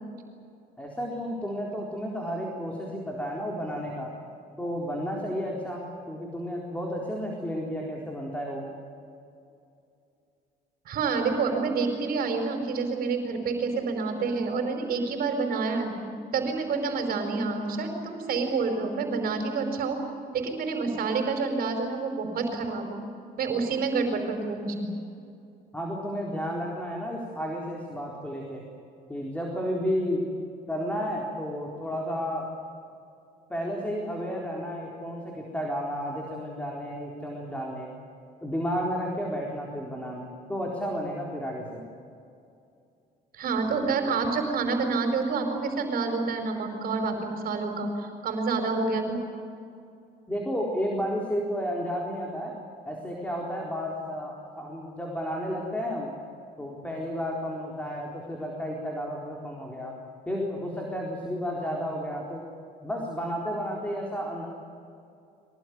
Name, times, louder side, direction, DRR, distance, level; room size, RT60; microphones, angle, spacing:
voice 1, 0.8-4.1 4.6-8.7 25.7-28.6 29.1-30.3 30.7-32.5 33.5-37.9 38.4-41.8 50.3-52.6 52.8-56.1 56.6-60.0 60.3-62.4 62.8-64.5, equal, 10° left, -1 dB, 4.1 m, -32 dB
voice 2, 10.8-15.9 16.3-20.0 20.3-23.0 23.4-24.9 43.3-49.2, right 4 dB, 60° right, 4 dB, 4.8 m, -28 dB
23.5 x 20.0 x 9.6 m, 2.5 s
cardioid pair, 110°, 17 cm